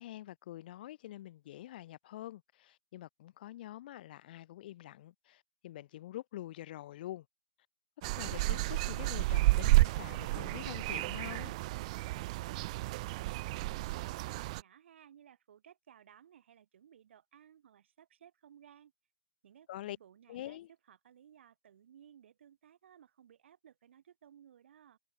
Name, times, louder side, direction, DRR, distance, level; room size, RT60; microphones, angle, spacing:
voice 1, 0.0-7.3 8.0-11.6 19.7-20.0 20.3-20.7, left 14 dB, 40° left, 2.9 m, -46 dB
sound 1, 8.0-14.6, right 20 dB, 30° right, 0.4 m, -31 dB
voice 2, 12.1-18.9 19.4-25.0, right 9 dB, 55° right, 4.5 m, -59 dB
hypercardioid pair, 150°, 8 cm